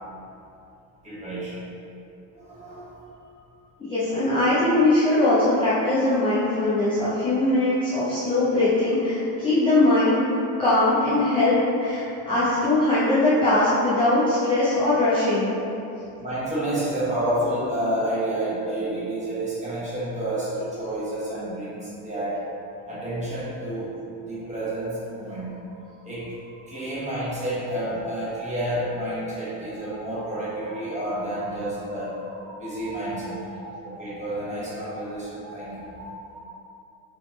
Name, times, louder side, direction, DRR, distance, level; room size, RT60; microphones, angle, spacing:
voice 1, 1.0-1.6 2.3-3.0 16.2-22.4 22.9-23.9 24.2-25.6 26.0-26.4 26.7-36.4, right 1 dB, 15° right, -10 dB, 1.0 m, -30 dB
voice 2, 3.8-10.2 10.6-15.5, left 2 dB, 15° left, -12 dB, 0.5 m, -21 dB
3.3 x 3.1 x 3.1 m, 2.8 s
cardioid pair, 140°, 40 cm